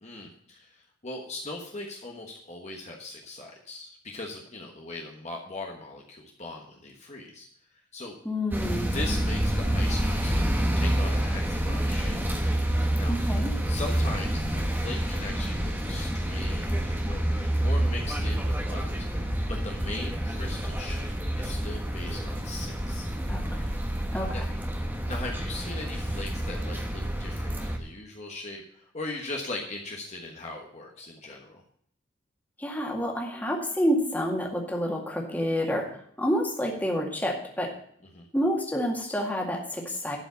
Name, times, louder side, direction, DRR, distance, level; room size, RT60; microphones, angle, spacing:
voice 1, 0.0-7.5 7.9-8.1 8.9-12.2 13.0-13.1 13.7-19.2 19.5-23.1 24.3-24.4 25.1-31.6 38.1-38.3, left 2 dB, 35° left, 0 dB, 1.3 m, -39 dB
voice 2, 8.3-8.9 13.1-13.5 23.3-23.7 24.1-24.4 32.6-37.7 38.3-40.2, equal, 10° left, 0 dB, 2.0 m, -28 dB
sound 1, 8.5-27.8, right 1 dB, 10° right, 1.2 m, -28 dB
12.0 x 5.1 x 8.2 m, 0.62 s
head